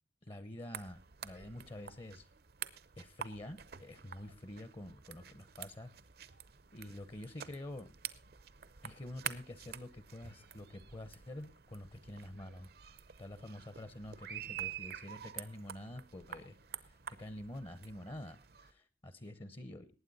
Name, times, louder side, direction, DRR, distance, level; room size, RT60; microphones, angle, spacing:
voice 1, 0.2-2.3 3.0-5.9 6.7-7.9 8.8-12.7 13.2-16.6 16.8-19.9, left 1 dB, 30° left, 13 dB, 0.8 m, -47 dB
sound 1, 0.7-18.7, right 9 dB, 55° right, 0.7 m, -48 dB
19.5 x 9.0 x 4.0 m, 0.30 s
head